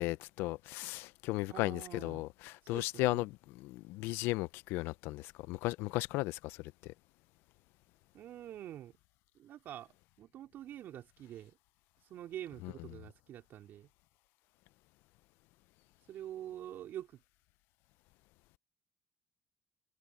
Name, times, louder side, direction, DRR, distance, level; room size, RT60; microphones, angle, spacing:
voice 1, 0.0-6.9 12.6-12.7, left 20 dB, 80° left, 0.8 m, -36 dB
voice 2, 1.5-2.3 2.6-3.2 8.1-9.0 9.3-11.6 12.0-13.9 16.1-17.2, right 11 dB, 65° right, 3.4 m, -46 dB
supercardioid pair, 65°, 4 cm